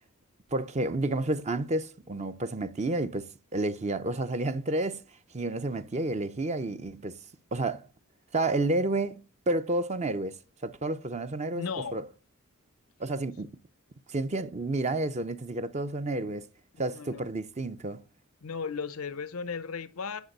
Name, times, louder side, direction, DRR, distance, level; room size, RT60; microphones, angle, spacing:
voice 1, 0.5-5.0 5.3-7.2 7.5-7.8 8.3-10.4 10.6-11.6 11.9-12.0 13.0-13.6 14.1-16.5 16.8-18.0, right 2 dB, 30° right, 0.5 m, -30 dB
voice 2, 11.5-12.0 16.9-17.3 18.4-20.2, left 5 dB, 90° left, 0.7 m, -35 dB
10.5 x 6.0 x 6.6 m
head